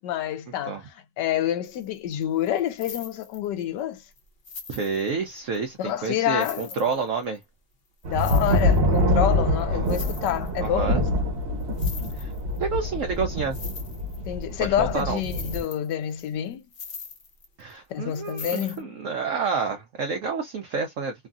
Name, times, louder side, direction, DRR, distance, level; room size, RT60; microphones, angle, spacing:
voice 1, 0.0-4.0 5.8-6.7 8.1-11.1 14.3-16.7 17.9-18.9, left 11 dB, 75° left, 1.2 m, -28 dB
sound 1, 1.6-1.9 2.1-3.6 4.1-4.2 4.4-5.6 6.0-6.1 6.4-7.4 8.0-9.0 9.3-9.4 9.6-10.7 11.6-12.6 12.9-13.0 13.3-14.6 14.9-17.7 18.1-18.8, left 5 dB, 50° left, 0.7 m, -41 dB
voice 2, 4.7-7.4 9.7-9.9 10.6-11.0 12.2-12.3 12.6-13.6 14.6-15.2 17.6-21.1, right 5 dB, 80° right, 0.7 m, -29 dB
sound 2, 8.0-15.6, left 1 dB, 45° right, 1.0 m, -25 dB
3.0 x 2.5 x 2.3 m
omnidirectional pair, 2.0 m